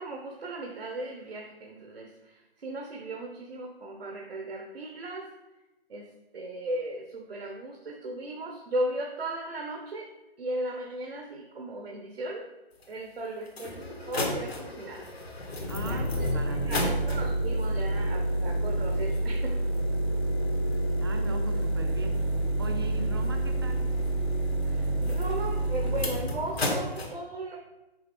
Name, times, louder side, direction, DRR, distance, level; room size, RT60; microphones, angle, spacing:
voice 1, 0.0-5.3 5.9-6.1 6.3-10.1 10.4-12.5 12.9-15.1 15.7-19.6 24.6-27.6, right 1 dB, 65° right, 2 dB, 1.0 m, -36 dB
sound 1, 12.8-12.9 13.5-27.1, right 1 dB, 75° left, 2.0 m, -29 dB
voice 2, 15.7-17.2 21.0-22.2 22.6-23.9, right 2 dB, 25° right, 3 dB, 0.6 m, -39 dB
6.6 x 3.6 x 5.9 m, 1.0 s
hypercardioid pair, 160°, 31 cm